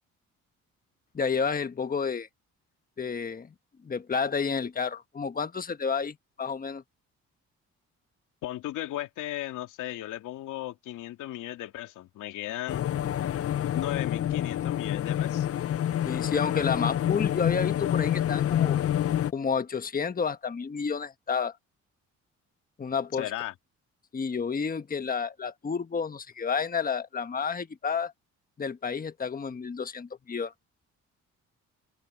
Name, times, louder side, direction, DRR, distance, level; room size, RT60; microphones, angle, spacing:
voice 1, 1.1-2.3 3.0-3.5 3.8-6.8 16.0-18.8 19.3-21.5 22.8-23.3 24.1-28.1 28.6-30.5, left 5 dB, 30° left, 1.3 m, -30 dB
voice 2, 8.4-12.9 13.7-15.5 23.2-23.5, left 14 dB, 90° left, 2.9 m, -36 dB
sound 1, 12.7-19.3, left 11 dB, 50° left, 0.6 m, -27 dB
open air
cardioid pair, 90°, 30 cm